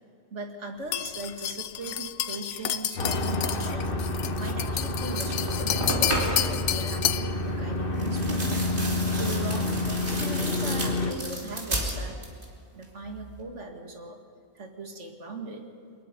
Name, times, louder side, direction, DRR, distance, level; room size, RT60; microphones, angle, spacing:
voice 1, 0.3-3.9 4.4-8.7 9.1-12.2 12.7-14.2 14.5-15.7, right 2 dB, 75° right, 3 dB, 2.4 m, -39 dB
sound 1, 0.9-7.3, left 11 dB, 80° left, 1.0 m, -30 dB
sound 2, 3.0-11.1, left 2 dB, 50° left, 1.6 m, -29 dB
sound 3, 4.7-4.8 5.1-6.6 7.9-12.5 12.8-13.4, right 1 dB, 45° right, 3.5 m, -33 dB
23.0 x 21.5 x 5.3 m, 2.4 s
omnidirectional pair, 1.2 m